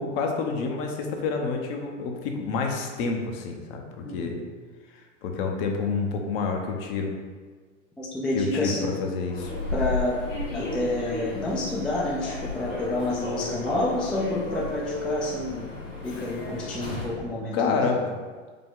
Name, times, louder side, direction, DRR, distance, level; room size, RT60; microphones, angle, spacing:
voice 1, 0.0-4.4 5.2-7.1 8.3-9.5 17.5-18.1, left 4 dB, 50° left, 3 dB, 0.8 m, -28 dB
voice 2, 4.0-4.5 8.0-9.0 9.7-10.2 10.5-15.7 16.0-17.8, left 1 dB, 5° left, -4 dB, 0.4 m, -29 dB
Human voice / Subway metro underground, 9.3-17.2, left 2 dB, 85° left, 1.3 m, -33 dB
5.0 x 2.2 x 3.7 m, 1.4 s
hypercardioid pair, 105°, 37 cm